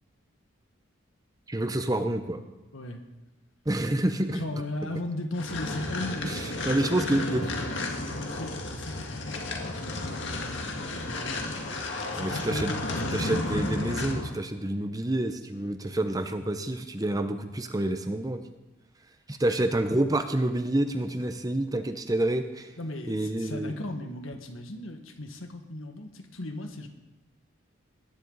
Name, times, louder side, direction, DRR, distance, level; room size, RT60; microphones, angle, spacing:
voice 1, 1.5-2.4 3.7-4.4 6.2-7.4 12.1-12.7 13.1-18.4 19.3-22.7 23.1-23.7, right 1 dB, 20° right, 8 dB, 0.7 m, -28 dB
voice 2, 4.3-11.7 12.1-13.4 22.8-26.9, left 1 dB, 85° left, 5 dB, 1.7 m, -37 dB
sound 1, 5.3-14.3, left 2 dB, 65° left, 1.9 m, -32 dB
19.5 x 10.5 x 4.0 m, 1.1 s
head